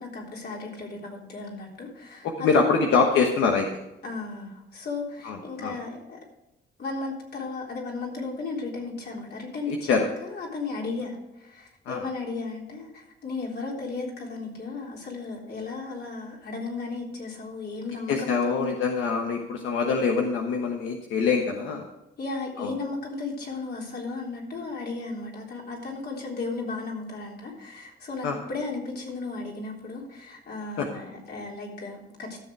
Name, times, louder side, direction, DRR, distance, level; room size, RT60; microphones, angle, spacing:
voice 1, 0.0-2.8 4.0-6.2 6.8-18.7 22.2-32.4, left 3 dB, 55° left, -1 dB, 3.7 m, -35 dB
voice 2, 2.2-3.7 5.2-5.7 9.7-10.1 11.9-12.1 18.1-21.8 22.6-22.7 28.2-28.3 30.8-30.9, left 5 dB, 85° left, 2 dB, 1.2 m, -24 dB
14.0 x 6.9 x 4.7 m, 0.95 s
cardioid pair, 90°, 20 cm